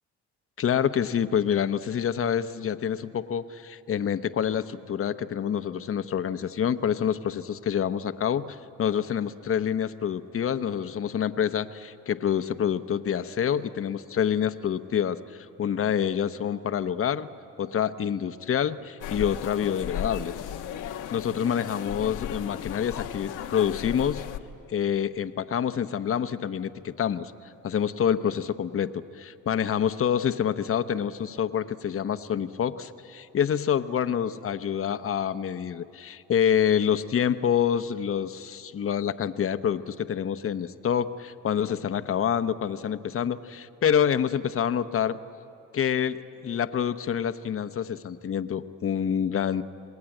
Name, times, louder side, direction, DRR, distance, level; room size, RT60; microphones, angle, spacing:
voice 1, 0.6-17.3 17.6-20.4 21.1-24.2 24.7-27.3 27.6-45.2 45.7-49.6, left 8 dB, 45° left, 11 dB, 0.9 m, -27 dB
sound 1, 19.0-24.4, left 9 dB, 90° left, 1.1 m, -35 dB
27.5 x 20.0 x 9.0 m, 2.7 s
cardioid pair, 90°, 30 cm